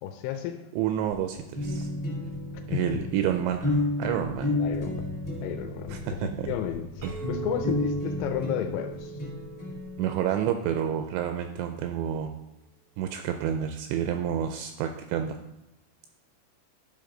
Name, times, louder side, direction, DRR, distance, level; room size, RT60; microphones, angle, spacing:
voice 1, 0.0-0.6 2.7-3.0 4.5-5.0 5.4-9.1, left 10 dB, 85° left, 6 dB, 2.9 m, -33 dB
voice 2, 0.7-1.9 2.7-4.6 5.9-6.5 7.0-7.1 10.0-12.3 13.0-15.4, right 9 dB, 85° right, 6 dB, 2.6 m, -29 dB
sound 1, 1.1-9.8, left 3 dB, 60° left, 2.5 m, -44 dB
sound 2, 1.5-10.0, left 2 dB, 35° left, 1.2 m, -32 dB
Chink clink, 7.0-11.5, right 6 dB, 30° right, 0.6 m, -41 dB
11.0 x 5.2 x 3.8 m, 0.93 s
omnidirectional pair, 5.5 m